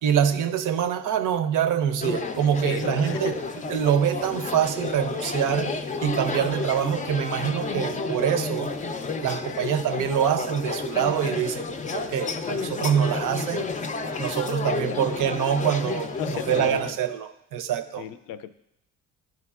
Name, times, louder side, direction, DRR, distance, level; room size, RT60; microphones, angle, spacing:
voice 1, 0.0-3.4 3.7-8.7 9.2-13.7 14.2-16.1 16.5-18.0, right 9 dB, 70° right, 11 dB, 0.6 m, -25 dB
sound 1, 2.0-16.9, left 4 dB, 25° left, 0.4 m, -31 dB
voice 2, 2.6-3.4 6.4-6.5 14.6-15.2 16.2-16.8 18.0-18.5, left 9 dB, 75° left, 12 dB, 0.5 m, -35 dB
11.5 x 4.7 x 2.4 m, 0.84 s
cardioid pair, 90°, 33 cm